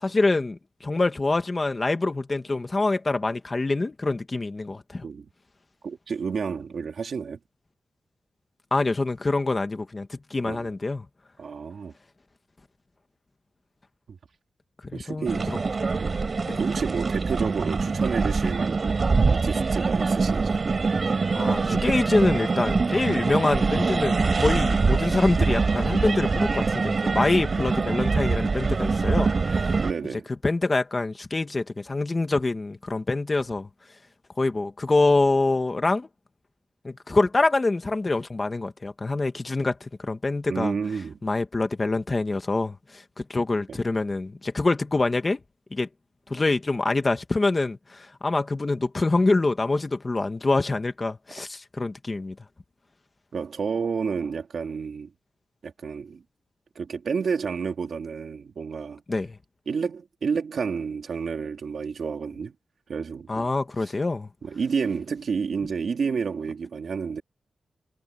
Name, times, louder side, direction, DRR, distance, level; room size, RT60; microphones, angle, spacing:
voice 1, 0.0-5.0 8.7-11.0 14.9-15.6 16.5-16.6 21.3-29.8 30.4-33.7 34.4-36.1 36.8-40.7 41.2-43.0 43.3-45.4 45.7-45.9 46.3-52.3 59.1-59.4 63.3-64.3, left 3 dB, 25° left, 1.7 m, -25 dB
voice 2, 5.8-7.4 10.4-10.7 11.4-11.9 14.1-14.2 14.9-15.6 16.0-16.2 16.6-18.9 19.3-20.6 29.8-30.3 40.5-41.2 43.7-43.8 53.3-55.1 55.6-56.2 56.8-59.0 59.7-62.5 62.9-63.5 64.4-67.2, right 5 dB, 60° right, 2.6 m, -30 dB
sound 1, 15.3-29.9, right 4 dB, 40° right, 4.0 m, -24 dB
wide cardioid pair, 160°, 0 cm